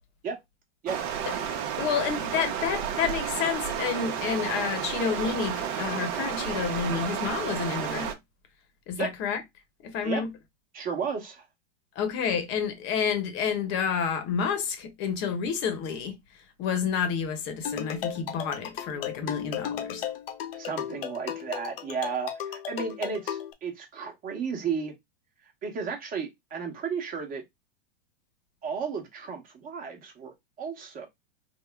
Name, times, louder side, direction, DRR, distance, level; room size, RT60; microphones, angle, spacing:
Stream, 0.9-8.1, right 8 dB, 45° right, 0.7 m, -31 dB
voice 1, 1.8-8.1 8.9-9.4 9.8-10.3 12.0-16.2 16.6-20.1, left 7 dB, 35° left, 0.9 m, -29 dB
voice 2, 10.7-11.4 20.6-24.9 25.6-27.4 28.6-30.3 30.6-31.1, right 6 dB, 25° right, 1.0 m, -33 dB
sound 1, 17.6-23.5, left 9 dB, 65° left, 0.7 m, -35 dB
3.5 x 2.0 x 3.3 m
hypercardioid pair, 135°, 32 cm